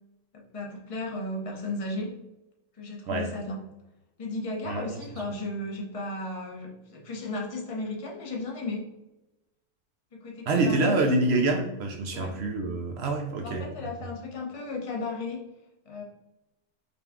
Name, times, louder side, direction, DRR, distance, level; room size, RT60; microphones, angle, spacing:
voice 1, 0.3-2.2 2.8-3.6 4.2-8.8 10.2-11.3 12.1-12.3 13.4-15.4 15.8-16.0, left 2 dB, 35° left, 0 dB, 0.5 m, -35 dB
voice 2, 4.6-5.0 10.5-13.6, right 2 dB, 65° right, 3 dB, 0.7 m, -26 dB
5.1 x 2.3 x 3.5 m, 0.97 s
omnidirectional pair, 1.6 m